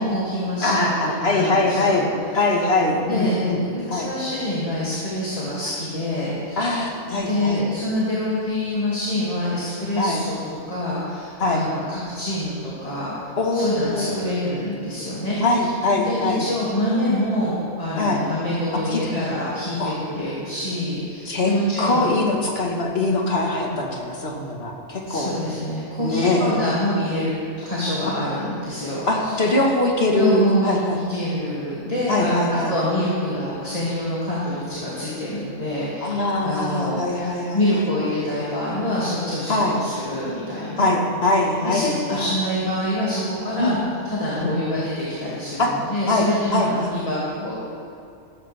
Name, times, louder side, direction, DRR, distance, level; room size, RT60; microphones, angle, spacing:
voice 1, 0.0-1.0 1.3-2.1 2.9-6.8 7.1-15.4 16.0-22.1 25.1-27.3 27.6-29.3 30.1-32.3 32.7-40.9 41.6-43.8 44.0-47.6, left 1 dB, 25° left, -9 dB, 2.5 m, -26 dB
voice 2, 0.6-2.1 2.3-3.6 3.9-4.1 6.6-7.6 10.0-10.2 11.4-11.6 13.4-14.2 15.4-16.4 18.0-18.2 18.7-19.3 19.8-19.9 21.2-21.5 21.8-25.3 26.0-26.6 29.1-31.0 32.1-32.7 36.0-37.8 39.5-39.8 40.8-42.3 43.6-43.8 44.4-44.5 45.6-45.7 46.1-46.9, left 2 dB, 50° left, 0 dB, 1.8 m, -22 dB
14.0 x 13.5 x 3.5 m, 2.4 s
omnidirectional pair, 1.4 m